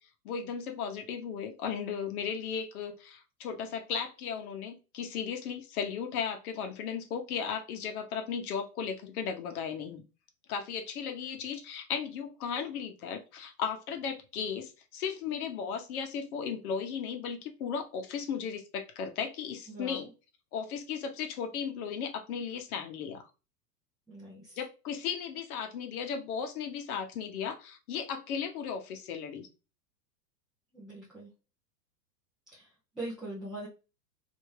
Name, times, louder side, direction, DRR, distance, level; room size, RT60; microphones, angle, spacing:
voice 1, 0.2-10.0 10.5-20.1 20.5-23.3 24.6-29.5, left 7 dB, 65° left, 1.0 m, -36 dB
voice 2, 19.7-20.1 24.1-24.6 30.7-31.3 32.5-33.7, right 2 dB, ahead, 0.4 m, -42 dB
3.4 x 2.8 x 3.2 m
hypercardioid pair, 140°, 47 cm